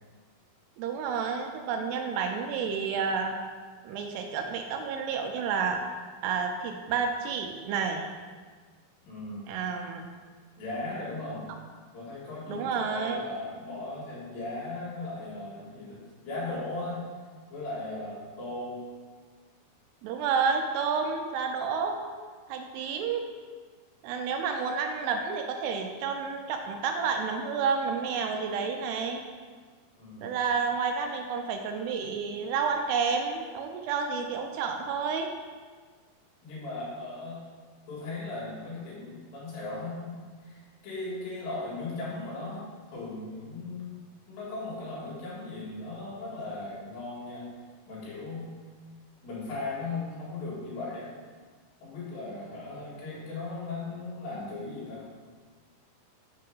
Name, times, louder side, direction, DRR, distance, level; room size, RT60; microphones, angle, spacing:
voice 1, 0.8-3.4 3.8-8.1 9.5-10.0 12.5-13.2 20.0-22.0 22.5-23.3 24.0-29.2 30.2-35.3, right 5 dB, 80° right, 4 dB, 2.5 m, -30 dB
voice 2, 9.0-9.4 10.6-11.5 11.9-17.0 17.5-18.8 30.0-30.3 36.4-37.4 37.9-43.9 44.3-47.5 47.9-48.5 49.2-51.1 51.8-55.1, left 2 dB, 80° left, -7 dB, 4.1 m, -37 dB
7.6 x 3.2 x 5.4 m, 1.5 s
omnidirectional pair, 4.9 m